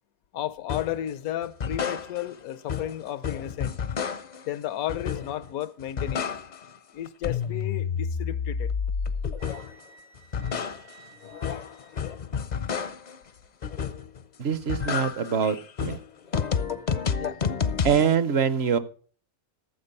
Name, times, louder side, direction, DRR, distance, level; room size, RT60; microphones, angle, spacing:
voice 1, 0.3-3.7 4.5-6.3 6.9-8.7 17.2-17.4, left 12 dB, 85° left, 1.1 m, -33 dB
sound 1, 0.7-1.0 1.4-2.4 2.7-4.5 4.9-5.5 5.8-6.8 7.1-9.8 10.2-13.2 13.6-14.2 14.5-18.1, left 6 dB, 50° left, 0.5 m, -30 dB
Wind instrument woodwind instrument, 9.4-12.2, right 6 dB, 85° right, 4.0 m, -54 dB
voice 2, 14.4-16.0 17.8-18.8, right 7 dB, 55° right, 0.9 m, -24 dB
14.0 x 7.3 x 5.4 m
omnidirectional pair, 1.5 m